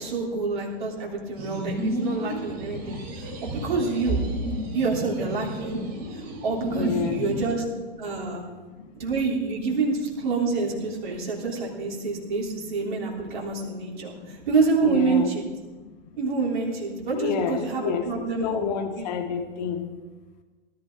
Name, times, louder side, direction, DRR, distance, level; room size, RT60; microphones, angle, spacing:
voice 1, 0.0-4.2 4.7-5.8 6.1-7.6 8.0-8.4 8.9-15.5 16.2-18.7 19.0-19.1, right 4 dB, 50° right, -2 dB, 3.5 m, -27 dB
sound 1, 1.4-7.5, equal, 30° right, 4.0 m, -33 dB
voice 2, 6.7-7.3 14.8-15.3 17.1-19.8, left 6 dB, 40° left, 5 dB, 1.8 m, -29 dB
19.0 x 12.0 x 3.8 m, 1.3 s
figure-of-eight pair, 110°, 32 cm